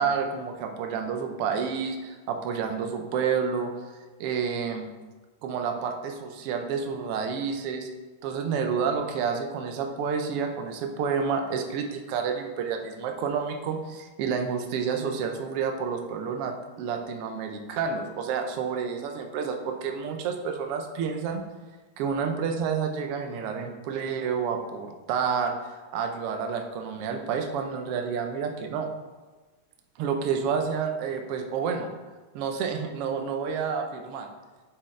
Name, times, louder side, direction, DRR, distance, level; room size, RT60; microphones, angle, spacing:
voice 1, 0.0-3.7 4.2-4.9 5.4-7.9 8.2-21.4 22.0-28.9 30.0-31.9 32.3-34.3, right 6 dB, 70° right, 4 dB, 1.4 m, -29 dB
7.3 x 6.9 x 3.2 m, 1.3 s
omnidirectional pair, 3.3 m